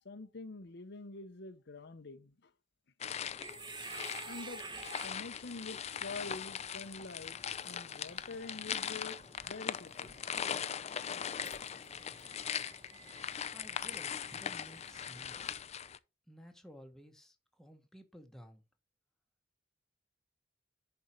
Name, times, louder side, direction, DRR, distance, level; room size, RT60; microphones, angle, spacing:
voice 1, 0.0-2.5 4.3-4.7 5.0-10.2, left 3 dB, 65° left, 0.8 m, -46 dB
sound 1, 3.0-16.0, left 8 dB, 35° left, 0.5 m, -40 dB
sound 2, 3.3-15.5, right 3 dB, 25° right, 1.4 m, -52 dB
voice 2, 13.5-15.5 16.3-18.6, equal, ahead, 1.3 m, -55 dB
10.5 x 4.5 x 4.4 m
head